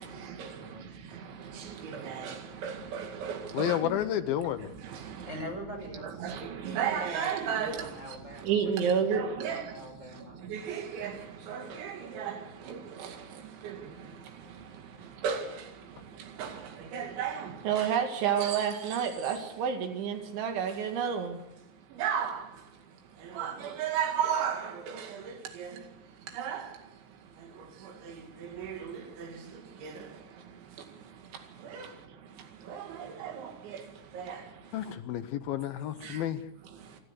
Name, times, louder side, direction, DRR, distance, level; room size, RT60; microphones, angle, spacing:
voice 1, 0.0-0.9 5.3-6.1 6.9-7.0 7.4-8.5 8.8-10.4 31.8-31.9, equal, 15° right, 5.9 m, -44 dB
voice 2, 1.9-2.4 2.6-3.8 6.2-7.8 8.5-9.6 10.5-11.1 11.5-12.4 12.7-12.8 13.6-13.7 15.2-15.4 16.4-16.5 16.9-21.3 22.0-22.4 23.4-24.6 24.9-25.0 25.6-25.7 26.4-26.6 28.6-29.0 29.8-29.9 32.7-32.8 33.2-33.3 34.2-34.4, right 7 dB, 85° right, 4.5 m, -31 dB
voice 3, 3.5-4.7 34.7-36.4, left 11 dB, 75° left, 2.3 m, -31 dB
28.5 x 13.0 x 8.2 m
omnidirectional pair, 5.2 m